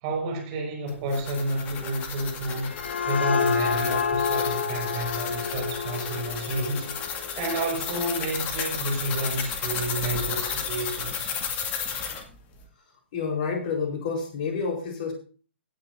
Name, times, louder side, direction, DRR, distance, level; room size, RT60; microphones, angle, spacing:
voice 1, 0.0-2.7 3.1-6.9 7.3-11.4, right 1 dB, 35° right, 5.1 m, -30 dB
sound 1, 0.9-12.2, left 7 dB, 25° left, 2.0 m, -33 dB
sound 2, 2.4-7.9, left 6 dB, 60° left, 1.2 m, -29 dB
voice 2, 13.1-15.1, left 5 dB, 40° left, 4.2 m, -29 dB
17.0 x 9.9 x 2.6 m
figure-of-eight pair, 120°, 7 cm